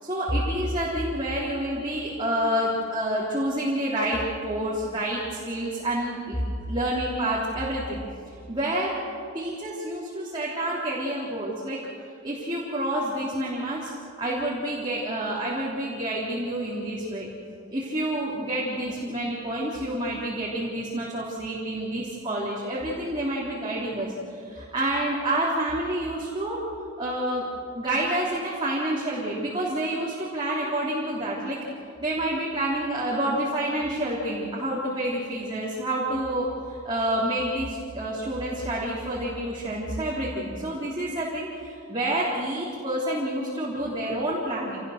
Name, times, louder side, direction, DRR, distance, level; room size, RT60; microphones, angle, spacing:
voice 1, 0.0-6.4 6.7-8.0 8.5-9.0 9.3-11.8 12.2-13.9 14.2-17.3 17.7-26.6 27.0-27.5 27.7-31.6 32.0-44.8, right 1 dB, 25° right, -6 dB, 3.5 m, -28 dB
28.0 x 18.5 x 6.7 m, 2.3 s
head